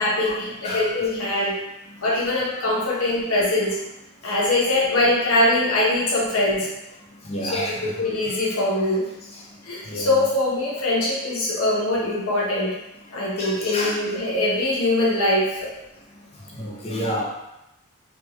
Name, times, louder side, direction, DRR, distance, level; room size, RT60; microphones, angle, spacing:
voice 1, 0.0-1.5 2.0-3.8 4.2-6.7 7.5-9.0 9.6-12.7 13.1-15.7, left 1 dB, 85° left, -5 dB, 1.0 m, -22 dB
voice 2, 7.2-8.5 9.9-10.2 13.4-14.3 16.5-17.3, equal, 30° left, -4 dB, 0.6 m, -31 dB
3.5 x 2.3 x 3.0 m, 0.90 s
head